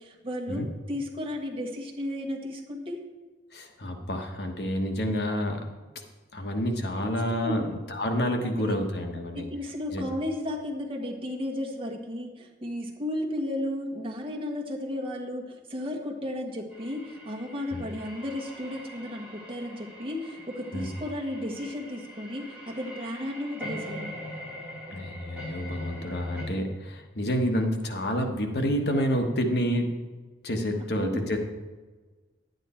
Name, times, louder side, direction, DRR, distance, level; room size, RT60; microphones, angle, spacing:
voice 1, 0.0-3.0 7.0-7.7 8.4-8.8 9.3-24.1 31.0-31.2, left 1 dB, 30° right, 0 dB, 1.5 m, -34 dB
voice 2, 3.5-5.6 6.3-9.4 9.9-10.0 17.7-17.8 20.7-20.9 24.9-30.0 30.4-31.4, equal, 65° left, 4 dB, 1.2 m, -28 dB
sound 1, 16.7-26.4, equal, 5° right, 3.6 m, -42 dB
11.5 x 9.2 x 4.4 m, 1.3 s
head